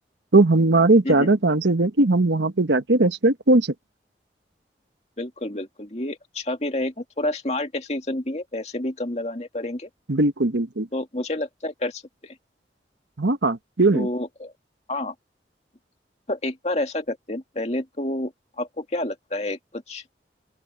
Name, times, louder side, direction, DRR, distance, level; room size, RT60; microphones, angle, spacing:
voice 1, 0.3-3.7 10.1-10.9 13.2-14.1, right 2 dB, 90° right, 1.2 m, -19 dB
voice 2, 5.2-9.9 10.9-12.3 13.9-14.5 14.9-15.1 16.3-18.3 18.6-20.0, left 1 dB, 35° left, 2.3 m, -29 dB
open air
head